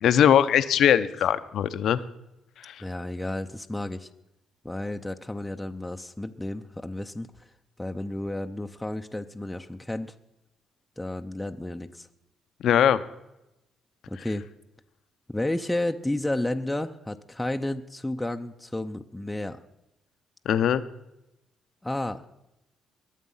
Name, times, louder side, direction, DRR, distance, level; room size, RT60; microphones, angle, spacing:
voice 1, 0.0-2.0 2.6-2.7 12.6-13.0 20.5-20.8, left 9 dB, 70° left, 13 dB, 0.8 m, -20 dB
voice 2, 2.8-4.1 4.6-7.5 7.8-10.2 11.0-12.1 14.1-14.4 15.3-19.6 21.8-22.4, left 1 dB, 10° left, 5 dB, 0.7 m, -32 dB
21.0 x 7.4 x 5.6 m, 0.90 s
cardioid pair, 90°, 0 cm